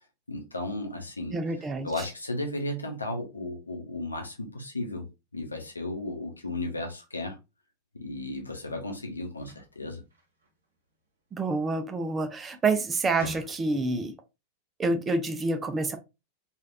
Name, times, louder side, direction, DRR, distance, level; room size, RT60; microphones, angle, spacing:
voice 1, 0.3-1.4 1.8-7.4 7.9-10.0, left 2 dB, 80° left, 0.7 m, -34 dB
voice 2, 1.3-1.9 11.3-14.1 14.8-16.0, right 3 dB, 20° right, 0.5 m, -28 dB
sound 1, 9.3-10.7 12.2-12.4 12.8-14.0, equal, 75° right, 0.9 m, -44 dB
3.1 x 2.4 x 2.5 m
figure-of-eight pair, 90°, 0 cm